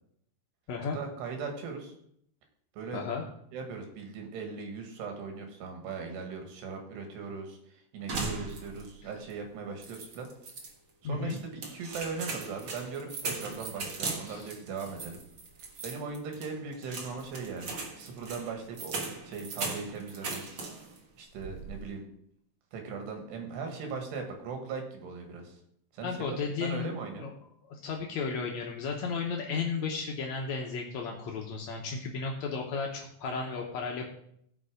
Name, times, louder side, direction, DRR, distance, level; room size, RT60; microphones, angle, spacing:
voice 1, 0.9-1.9 2.7-3.0 3.5-7.6 7.9-10.3 11.0-15.2 15.8-18.9 19.2-20.4 21.2-22.0 22.7-25.6 25.9-27.3, right 5 dB, 85° right, 4 dB, 3.8 m, -39 dB
voice 2, 2.9-3.2 11.0-11.4 14.2-14.5 26.0-27.3 27.7-34.1, left 5 dB, 85° left, 0 dB, 1.6 m, -34 dB
sound 1, 8.1-9.0 9.3-9.4 9.8-10.7 11.3-21.0 21.3-21.8, right 3 dB, 60° right, 1.3 m, -39 dB
16.0 x 5.5 x 5.0 m, 0.70 s
omnidirectional pair, 4.7 m